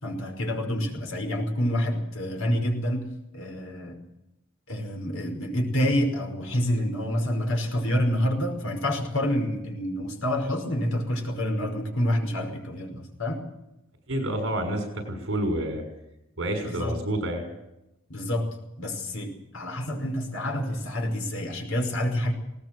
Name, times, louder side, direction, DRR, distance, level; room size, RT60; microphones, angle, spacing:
voice 1, 0.0-4.0 4.7-13.4 16.6-17.0 18.1-18.5 18.8-22.3, equal, 75° left, 3 dB, 5.3 m, -28 dB
voice 2, 14.1-15.8 16.4-17.5, right 1 dB, 60° right, 5 dB, 6.0 m, -28 dB
20.5 x 18.5 x 7.8 m, 0.88 s
head